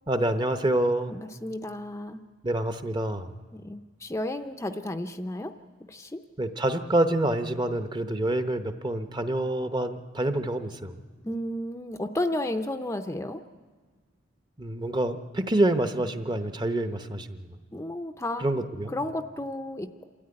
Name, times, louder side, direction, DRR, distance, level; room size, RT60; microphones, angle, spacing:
voice 1, 0.1-1.1 2.4-3.3 6.4-11.0 14.6-17.4 18.4-18.9, right 1 dB, 25° right, 8 dB, 0.9 m, -27 dB
voice 2, 1.1-2.2 3.5-5.5 5.9-6.2 11.2-13.4 17.7-18.5 18.9-20.1, left 1 dB, 15° left, 6 dB, 0.6 m, -32 dB
27.0 x 13.5 x 9.6 m, 1.5 s
head